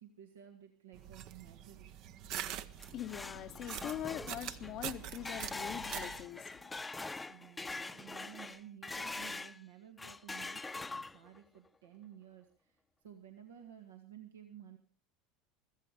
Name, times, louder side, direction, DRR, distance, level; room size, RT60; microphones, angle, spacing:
voice 1, 0.0-1.9 7.3-14.8, right 10 dB, 85° right, 2.0 m, -54 dB
sound 1, 0.9-6.3, right 10 dB, 55° right, 1.0 m, -44 dB
sound 2, 2.6-9.6 10.0-11.4, left 3 dB, 15° left, 0.7 m, -43 dB
voice 2, 2.9-6.8, left 12 dB, 50° left, 0.8 m, -43 dB
15.5 x 15.0 x 5.1 m
hypercardioid pair, 80°, 0 cm